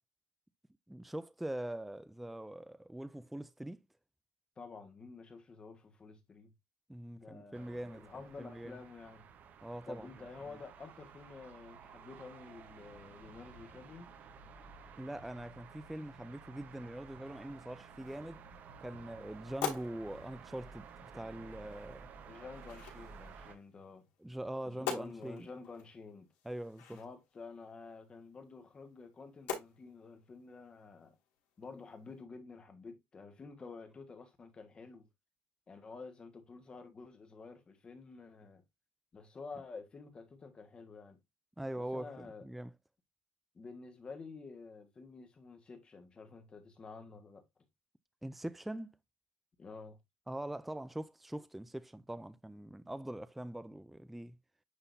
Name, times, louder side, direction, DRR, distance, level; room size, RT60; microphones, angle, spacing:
voice 1, 0.9-3.8 6.9-8.1 8.4-8.8 9.6-10.1 15.0-18.4 18.8-22.1 24.2-25.5 26.4-27.0 41.6-42.7 48.2-49.0 50.3-54.4, right 1 dB, 5° right, 0.3 m, -43 dB
voice 2, 4.6-6.5 7.1-9.3 9.9-14.1 21.7-21.8 22.2-24.1 24.6-26.3 26.9-31.2 31.6-35.1 35.7-38.6 39.1-41.2 41.8-42.5 43.5-47.4 49.6-50.0, left 4 dB, 20° left, 1.4 m, -50 dB
sound 1, 7.5-23.6, right 6 dB, 40° right, 1.0 m, -54 dB
sound 2, 17.2-32.2, left 8 dB, 90° left, 3.3 m, -47 dB
9.8 x 3.8 x 2.6 m
cardioid pair, 150°, 4 cm